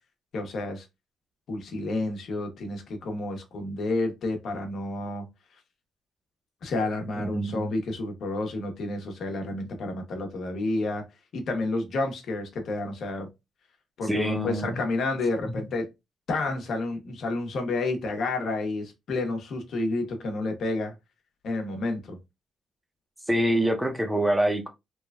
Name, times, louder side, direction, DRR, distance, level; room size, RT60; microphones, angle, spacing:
voice 1, 0.3-0.9 1.5-5.3 6.6-11.0 11.3-13.3 14.0-15.9 16.3-20.9 21.4-22.2, left 2 dB, 65° left, 0.9 m, -30 dB
voice 2, 7.2-7.7 14.0-14.7 15.4-15.5 23.3-24.7, right 1 dB, 5° right, 0.7 m, -25 dB
3.0 x 2.3 x 2.3 m
cardioid pair, 90°, 0 cm